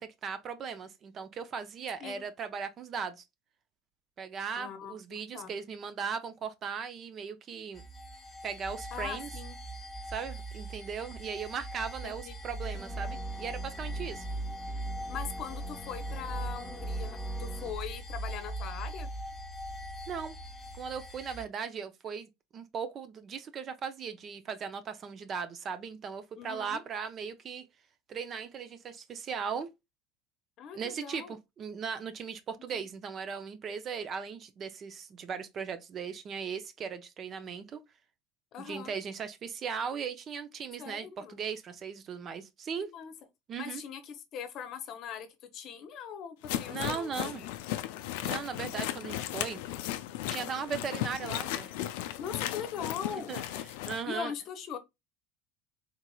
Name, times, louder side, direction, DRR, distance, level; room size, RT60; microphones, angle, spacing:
voice 1, 0.0-3.2 4.2-7.8 8.4-9.3 10.1-14.2 20.1-20.4 20.7-27.7 28.1-29.7 30.7-37.8 38.7-42.9 43.5-43.8 46.7-47.4 48.2-49.6 50.3-51.8 53.3-53.4 53.9-54.3, right 6 dB, 40° right, 0.5 m, -38 dB
voice 2, 4.6-5.5 8.9-9.6 12.0-12.4 15.1-19.1 26.3-26.8 30.6-31.3 32.7-32.8 38.5-38.9 40.8-41.4 42.8-43.1 43.6-47.5 52.2-53.3 54.1-54.8, left 8 dB, 55° left, 0.8 m, -41 dB
sound 1, 7.7-21.4, right 1 dB, 25° left, 1.0 m, -39 dB
sound 2, 12.7-17.7, right 1 dB, 5° right, 0.7 m, -50 dB
sound 3, 46.4-54.0, left 13 dB, 75° left, 0.3 m, -36 dB
3.8 x 2.9 x 2.3 m
hypercardioid pair, 90°, 0 cm